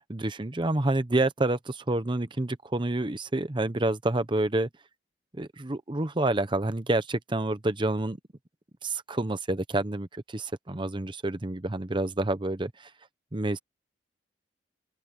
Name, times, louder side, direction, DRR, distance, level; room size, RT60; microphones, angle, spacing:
voice 1, 0.0-4.7 5.4-8.2 8.8-12.9 13.3-13.6, right 2 dB, 30° right, 0.9 m, -28 dB
open air
head